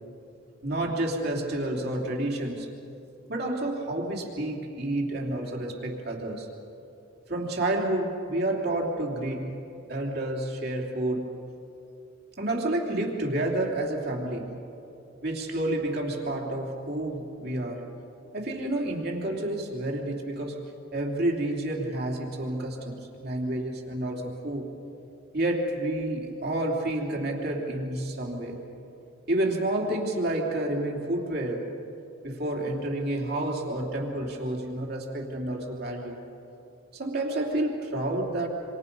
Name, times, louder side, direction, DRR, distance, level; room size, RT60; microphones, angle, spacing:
voice 1, 0.6-2.7 3.3-6.5 7.3-9.5 9.9-11.3 12.4-14.5 15.2-17.8 18.3-20.6 20.9-24.6 25.3-28.6 29.3-31.6 32.2-36.2 36.9-38.5, right 1 dB, 50° right, 0 dB, 3.3 m, -29 dB
26.5 x 26.5 x 5.5 m, 2.8 s
head